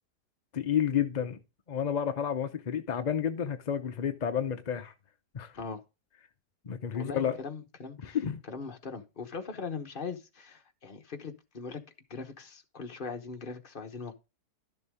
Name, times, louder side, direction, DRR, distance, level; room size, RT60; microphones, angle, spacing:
voice 1, 0.5-1.4 1.7-4.9 5.3-5.6 6.6-7.4 8.0-8.4, left 8 dB, 50° left, 0.5 m, -30 dB
voice 2, 6.9-8.2 8.5-11.8 12.1-14.1, left 5 dB, 35° left, 1.1 m, -40 dB
12.0 x 6.9 x 3.5 m
omnidirectional pair, 1.7 m